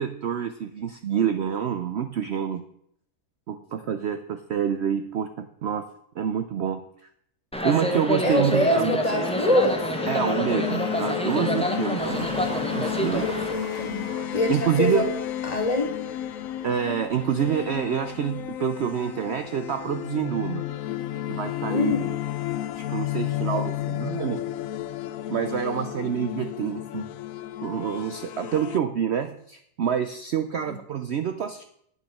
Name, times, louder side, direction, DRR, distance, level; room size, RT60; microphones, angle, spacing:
voice 1, 0.0-2.6 3.5-5.8 6.2-6.8 7.6-9.0 10.1-13.3 14.5-15.0 16.6-20.7 21.3-22.0 22.8-24.5 25.3-27.0 27.6-31.6, right 8 dB, 60° right, 9 dB, 0.7 m, -27 dB
sound 1, 7.5-13.5, equal, 5° left, 0.9 m, -28 dB
voice 2, 8.2-9.8 11.7-12.3 13.1-14.1 14.3-15.1 15.4-15.9 21.7-22.1 30.5-30.8, left 1 dB, 25° left, 3 dB, 1.8 m, -25 dB
sound 2, 9.1-28.8, left 12 dB, 70° left, 0.9 m, -32 dB
sound 3, 12.0-24.0, right 1 dB, 40° right, 2.3 m, -45 dB
9.1 x 7.3 x 6.3 m, 0.70 s
omnidirectional pair, 1.6 m